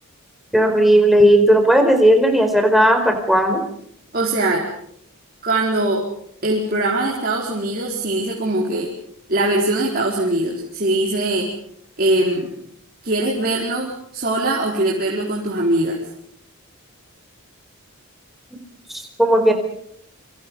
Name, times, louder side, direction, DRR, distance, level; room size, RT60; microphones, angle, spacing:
voice 1, 0.5-3.6 19.2-19.5, equal, ahead, 4 dB, 4.5 m, -14 dB
voice 2, 4.1-4.6 5.4-6.0 6.4-8.9 9.3-11.5 12.0-12.5 13.0-16.0, right 2 dB, 40° right, -3 dB, 4.5 m, -21 dB
29.0 x 25.5 x 5.5 m, 0.68 s
head